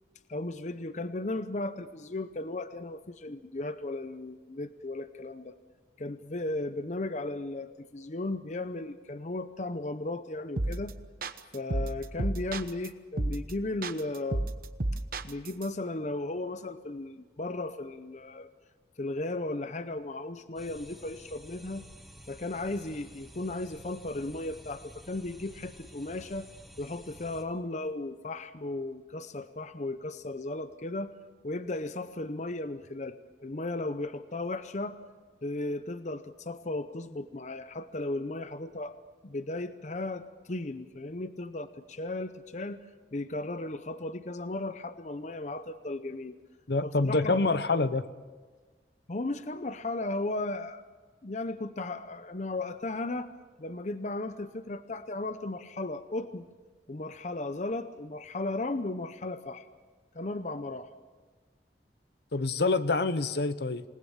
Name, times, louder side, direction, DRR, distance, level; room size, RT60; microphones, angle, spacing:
voice 1, 0.3-5.6 6.0-10.9 11.5-14.5 15.2-18.5 19.0-21.8 22.3-26.5 26.8-31.2 31.4-33.2 33.4-35.0 35.4-39.0 39.2-42.8 43.1-46.4 46.8-47.4 49.1-50.8 51.2-53.3 53.6-56.5 56.9-59.7 60.1-60.9, left 2 dB, 40° left, 11 dB, 0.7 m, -35 dB
sound 1, 10.6-10.9 11.2-12.9 13.2-13.5 13.8-15.7, right 2 dB, 55° right, 1.1 m, -31 dB
sound 2, 20.6-27.4, equal, ahead, 2.4 m, -51 dB
voice 2, 46.7-48.1 62.3-63.8, left 3 dB, 65° left, 13 dB, 0.9 m, -26 dB
27.0 x 19.5 x 7.2 m, 1.4 s
head